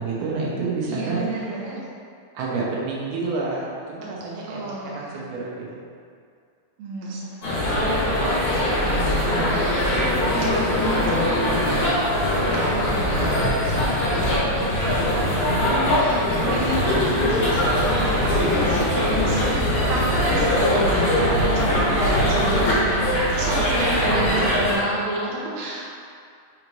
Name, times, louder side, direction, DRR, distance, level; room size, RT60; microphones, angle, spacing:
voice 1, 0.0-1.2 2.3-5.8 8.9-9.5 23.9-24.4, right 4 dB, 90° right, -4 dB, 2.4 m, -29 dB
voice 2, 0.9-1.8 4.0-4.1 4.5-5.2 6.8-25.9, right 2 dB, 70° right, -5 dB, 2.2 m, -32 dB
sound 1, 7.4-24.8, left 1 dB, 70° left, 3.0 m, -21 dB
6.5 x 3.1 x 5.2 m, 2.2 s
omnidirectional pair, 3.4 m